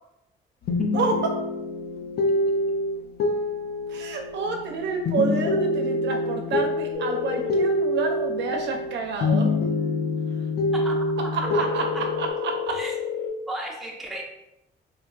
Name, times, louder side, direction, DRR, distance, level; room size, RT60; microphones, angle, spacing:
sound 1, 0.6-8.9 9.2-12.3, left 2 dB, 50° left, 0.4 m, -26 dB
voice 1, 0.9-1.3 3.9-9.5 11.3-11.8 12.2-12.7, right 4 dB, 65° right, 3 dB, 0.5 m, -28 dB
sound 2, 6.9-7.5 11.4-13.3, left 7 dB, 20° left, 1.0 m, -30 dB
voice 2, 10.7-12.1 12.7-12.9 13.5-14.2, right 1 dB, ahead, -2 dB, 0.6 m, -35 dB
3.2 x 2.3 x 2.3 m, 0.83 s
cardioid pair, 90°, 20 cm